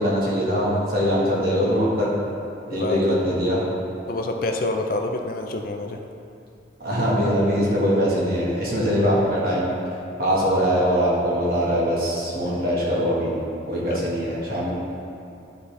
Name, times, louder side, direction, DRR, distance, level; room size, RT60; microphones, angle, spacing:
voice 1, 0.0-2.1 2.7-3.6 6.8-9.7 10.2-13.4 13.7-14.7, equal, 50° right, -6 dB, 1.6 m, -22 dB
voice 2, 2.7-3.0 4.1-6.0 13.9-14.0, left 2 dB, 50° left, 4 dB, 0.4 m, -27 dB
11.5 x 4.2 x 3.3 m, 2.7 s
head